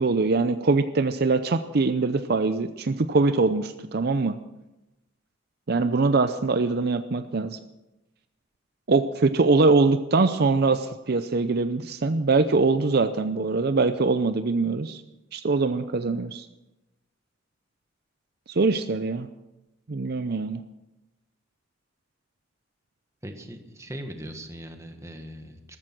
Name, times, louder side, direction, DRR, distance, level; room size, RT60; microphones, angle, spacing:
voice 1, 0.0-4.4 5.7-7.6 8.9-15.0 15.3-16.5 18.5-19.3 19.9-20.6, right 3 dB, 55° right, 10 dB, 0.6 m, -23 dB
voice 2, 23.2-25.8, equal, 15° right, 5 dB, 1.6 m, -40 dB
14.0 x 14.0 x 6.0 m, 0.98 s
head